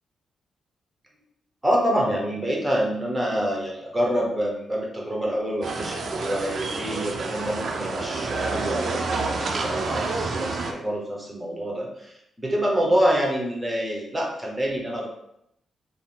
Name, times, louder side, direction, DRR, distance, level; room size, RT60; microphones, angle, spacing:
voice 1, 1.6-15.1, equal, 10° right, -2 dB, 0.8 m, -26 dB
sound 1, 5.6-10.7, right 3 dB, 50° right, 0.4 m, -29 dB
4.2 x 2.0 x 3.6 m, 0.78 s
wide cardioid pair, 140°, 0 cm